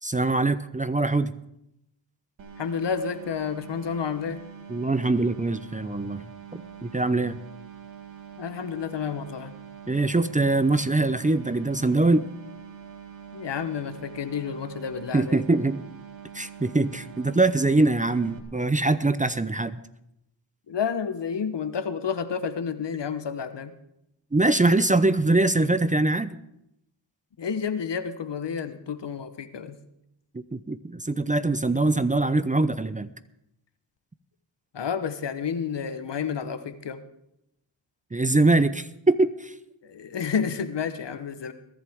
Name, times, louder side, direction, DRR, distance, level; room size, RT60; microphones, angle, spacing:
voice 1, 0.0-1.3 4.7-6.2 6.5-7.4 9.9-12.3 15.1-15.8 16.3-19.8 24.3-26.4 30.3-33.1 38.1-39.5, right 2 dB, 15° right, 13 dB, 0.6 m, -23 dB
sound 1, 2.4-18.4, right 8 dB, 85° right, 1.7 m, -44 dB
voice 2, 2.6-4.4 8.4-9.5 13.3-15.4 20.7-23.7 27.4-29.8 34.7-37.0 39.8-41.5, left 6 dB, 65° left, 11 dB, 1.1 m, -30 dB
22.0 x 11.0 x 3.6 m, 0.82 s
cardioid pair, 50°, 45 cm